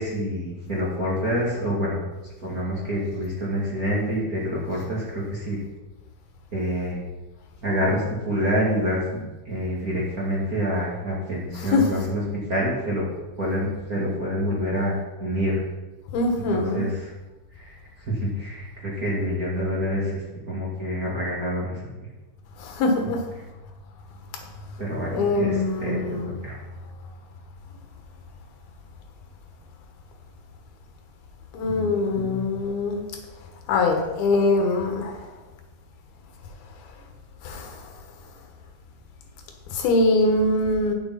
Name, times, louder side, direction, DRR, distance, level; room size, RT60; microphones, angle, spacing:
voice 1, 0.0-2.0 2.4-5.6 6.5-7.0 7.6-9.2 9.4-12.2 12.5-13.0 13.4-15.6 16.3-17.1 17.6-17.7 18.0-21.8 24.8-26.0 26.4-26.5 31.6-32.4, equal, 35° right, -5 dB, 1.7 m, -27 dB
voice 2, 11.6-12.0 16.1-16.8 22.6-23.2 25.1-26.3 31.5-33.0 33.7-35.2 37.4-37.9 39.7-40.9, left 2 dB, 75° left, 4 dB, 3.2 m, -23 dB
9.3 x 7.0 x 5.8 m, 1.1 s
omnidirectional pair, 4.4 m